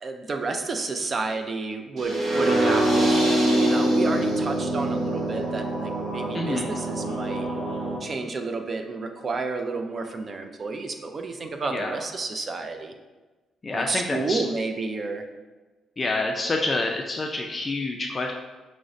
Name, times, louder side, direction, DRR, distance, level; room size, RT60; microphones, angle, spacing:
voice 1, 0.0-3.2 3.5-7.5 8.0-12.9 13.7-15.2, right 3 dB, 40° right, 6 dB, 0.4 m, -31 dB
sound 1, 2.0-8.0, right 1 dB, 60° right, 0.8 m, -24 dB
voice 2, 6.3-6.7 11.7-11.9 13.6-14.4 16.0-18.3, left 2 dB, 30° left, 1 dB, 0.3 m, -27 dB
6.0 x 2.1 x 2.6 m, 1.2 s
cardioid pair, 90°, 0 cm